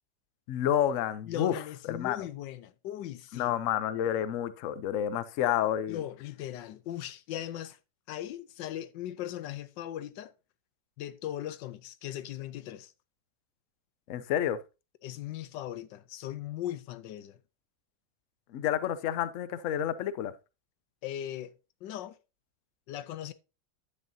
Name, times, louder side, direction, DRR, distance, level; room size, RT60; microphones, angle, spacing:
voice 1, 0.5-1.6 1.9-2.3 3.3-6.0 14.1-14.6 18.5-20.3, left 10 dB, 60° left, 0.9 m, -29 dB
voice 2, 1.3-3.5 5.9-7.8 8.1-10.3 11.0-12.9 15.0-17.4 21.0-21.5 21.8-22.2 22.9-23.3, left 12 dB, 90° left, 1.4 m, -38 dB
10.5 x 8.3 x 2.7 m
omnidirectional pair, 1.9 m